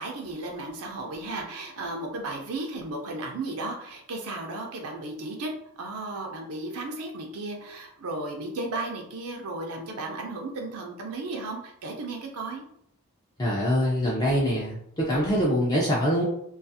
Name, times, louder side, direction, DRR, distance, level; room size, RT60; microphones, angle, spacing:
voice 1, 0.0-5.5 5.8-12.6, right 2 dB, 80° right, 1 dB, 0.5 m, -34 dB
voice 2, 13.4-16.2, equal, 15° left, -4 dB, 0.4 m, -24 dB
2.4 x 2.3 x 2.7 m, 0.70 s
head